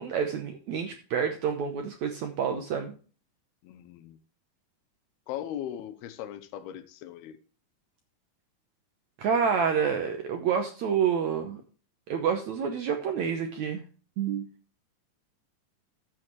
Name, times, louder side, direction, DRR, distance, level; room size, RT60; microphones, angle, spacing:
voice 1, 0.0-2.9 9.2-11.6 12.1-13.8 14.2-14.5, right 7 dB, 70° right, 1.7 m, -28 dB
voice 2, 3.6-4.2 5.3-7.4, left 11 dB, 85° left, 2.8 m, -38 dB
13.5 x 7.6 x 3.1 m
omnidirectional pair, 4.5 m